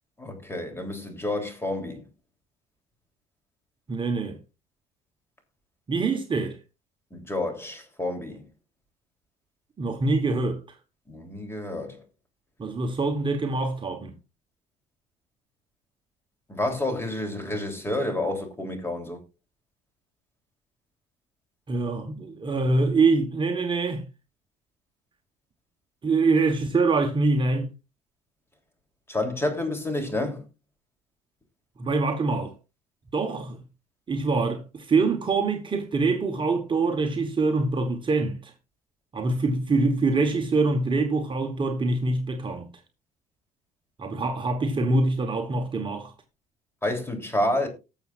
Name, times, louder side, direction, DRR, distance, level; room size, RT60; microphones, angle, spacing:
voice 1, 0.2-2.0 7.1-8.4 11.1-12.0 16.5-19.2 29.1-30.4 46.8-47.7, left 1 dB, 15° left, 3.4 m, -29 dB
voice 2, 3.9-4.4 5.9-6.6 9.8-10.6 12.6-14.1 21.7-24.0 26.0-27.7 31.8-32.5 33.1-33.6 34.1-38.5 39.1-42.7 44.0-46.1, right 3 dB, 30° right, 1.3 m, -24 dB
19.0 x 7.2 x 2.5 m
cardioid pair, 110°, 17 cm